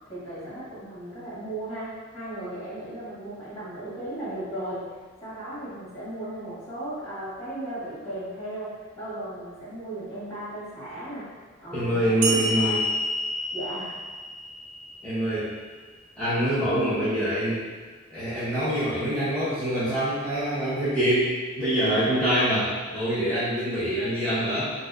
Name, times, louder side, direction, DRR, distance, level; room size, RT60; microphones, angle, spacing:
voice 1, 0.1-4.9 5.2-11.3 11.6-12.9 13.5-14.0, right 1 dB, 35° left, -11 dB, 1.4 m, -36 dB
voice 2, 11.7-12.8 15.0-15.5 16.2-17.6 18.1-24.7, right 1 dB, 5° left, -14 dB, 0.6 m, -25 dB
sound 1, 12.2-15.6, equal, 85° right, 0.4 m, -29 dB
4.1 x 2.0 x 2.3 m, 1.4 s
head